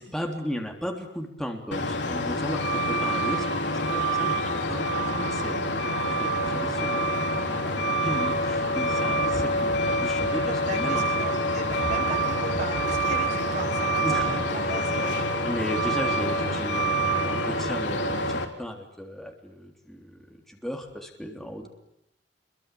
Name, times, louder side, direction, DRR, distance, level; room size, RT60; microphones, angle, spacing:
voice 1, 0.0-4.9 5.2-11.0 14.0-14.4 15.4-21.7, equal, ahead, 2 dB, 3.4 m, -35 dB
Truck, 1.7-18.4, right 1 dB, 75° left, 3.8 m, -26 dB
voice 2, 10.6-15.1, right 2 dB, 45° right, 3 dB, 7.0 m, -36 dB
27.0 x 23.0 x 8.5 m, 0.81 s
head